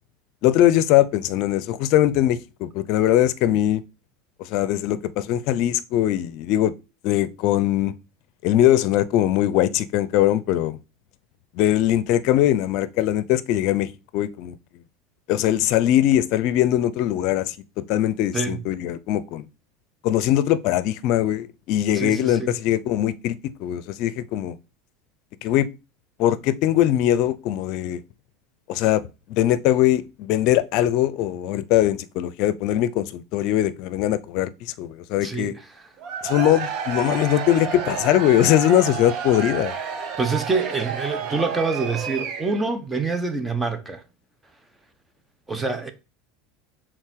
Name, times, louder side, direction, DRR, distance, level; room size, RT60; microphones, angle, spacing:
voice 1, 0.4-3.8 4.4-6.7 7.0-7.9 8.4-10.8 11.6-14.6 15.3-17.6 17.9-19.5 20.0-24.6 25.4-25.7 26.2-28.0 28.7-35.5 36.2-39.7, left 12 dB, 60° left, 0.6 m, -21 dB
voice 2, 21.9-22.5 35.2-35.8 40.2-44.0 45.5-45.9, right 4 dB, 10° right, 1.3 m, -26 dB
Cheering / Crowd, 36.0-42.7, right 7 dB, 50° right, 1.4 m, -30 dB
6.5 x 3.8 x 4.6 m
supercardioid pair, 110°, 0 cm